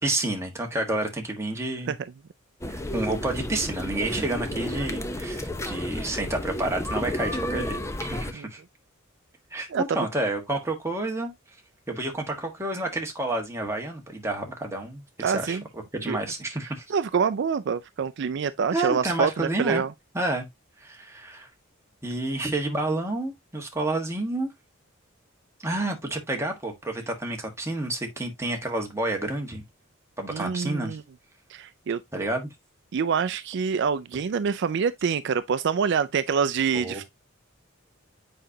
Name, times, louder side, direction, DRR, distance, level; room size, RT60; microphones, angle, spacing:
voice 1, 0.0-1.9 2.9-8.6 9.5-11.3 11.9-15.6 15.9-16.8 18.7-19.8 20.1-20.5 20.8-21.5 22.0-24.5 25.6-29.6 30.2-31.0 32.1-32.5 36.7-37.0, right 2 dB, 15° right, 1.5 m, -29 dB
sound 1, 2.6-8.3, left 1 dB, 15° left, 0.7 m, -32 dB
voice 2, 15.2-15.6 16.1-16.2 16.9-19.9 30.3-31.0 31.5-32.0 32.9-37.0, right 6 dB, 60° right, 0.4 m, -26 dB
7.8 x 5.1 x 2.7 m
head